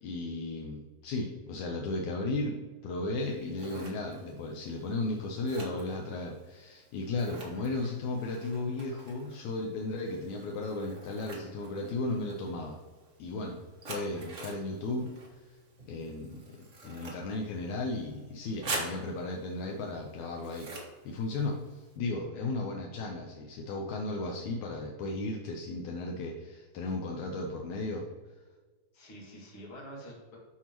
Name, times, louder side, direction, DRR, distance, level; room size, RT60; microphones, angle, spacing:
voice 1, 0.0-12.8 13.2-13.6 13.8-15.1 15.9-20.7 21.1-28.1, left 2 dB, 80° left, 1 dB, 2.1 m, -35 dB
Scissors, 3.2-22.0, right 2 dB, 50° right, 0.9 m, -46 dB
voice 2, 22.3-22.7 28.9-30.4, equal, 45° left, -3 dB, 2.6 m, -47 dB
11.0 x 4.6 x 3.0 m, 1.3 s
omnidirectional pair, 3.4 m